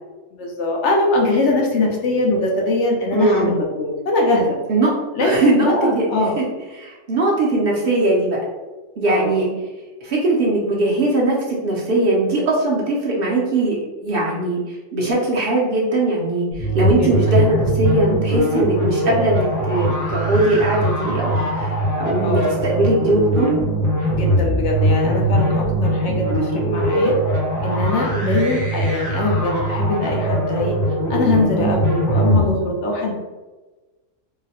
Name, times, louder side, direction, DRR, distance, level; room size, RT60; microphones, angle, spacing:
voice 1, 0.3-4.6 5.2-6.4 9.1-9.4 17.0-17.2 22.2-22.5 24.1-27.2 27.6-30.8 31.1-33.1, left 2 dB, 70° left, 0 dB, 0.9 m, -21 dB
voice 2, 3.1-3.5 4.7-4.9 5.2-6.0 6.4-6.5 6.7-8.4 9.0-9.5 10.0-23.5 28.1-28.3, right 2 dB, 55° right, -4 dB, 0.8 m, -20 dB
sound 1, 16.5-32.5, right 1 dB, 30° left, 0.3 m, -21 dB
3.8 x 2.1 x 2.8 m, 1.2 s
omnidirectional pair, 1.3 m